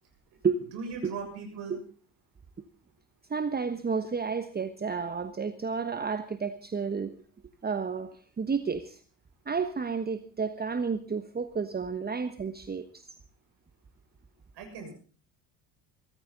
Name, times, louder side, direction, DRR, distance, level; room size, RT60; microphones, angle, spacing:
voice 1, 0.7-1.8 14.5-14.9, right 5 dB, 60° right, 3 dB, 6.8 m, -38 dB
voice 2, 3.3-7.1 7.6-9.0 9.5-13.0, right 5 dB, 20° right, 10 dB, 1.2 m, -31 dB
23.0 x 14.0 x 4.0 m, 0.40 s
hypercardioid pair, 60°, 46 cm